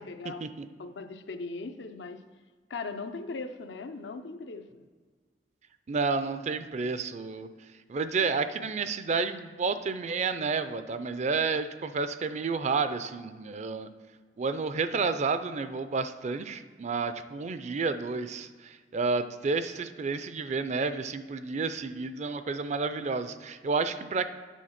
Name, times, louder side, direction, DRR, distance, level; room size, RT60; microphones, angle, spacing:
voice 1, 0.0-0.4 0.8-2.2 2.7-4.9, left 3 dB, 85° left, 8 dB, 0.6 m, -39 dB
voice 2, 5.9-7.5 7.9-13.9 14.4-24.3, right 4 dB, 40° right, 11 dB, 0.4 m, -30 dB
9.1 x 3.9 x 5.7 m, 1.5 s
head